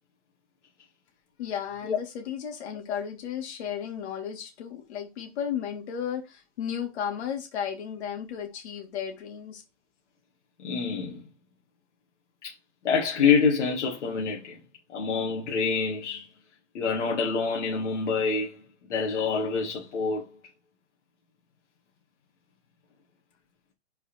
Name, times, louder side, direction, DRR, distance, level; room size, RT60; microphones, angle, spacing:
voice 1, 1.4-9.6, left 8 dB, 65° left, 2.8 m, -34 dB
voice 2, 10.6-11.2 12.4-12.5 12.8-14.6 14.9-16.3 16.7-18.6 18.9-20.2, left 5 dB, 80° left, 2.2 m, -26 dB
5.3 x 4.9 x 4.4 m
hypercardioid pair, 145°, 35 cm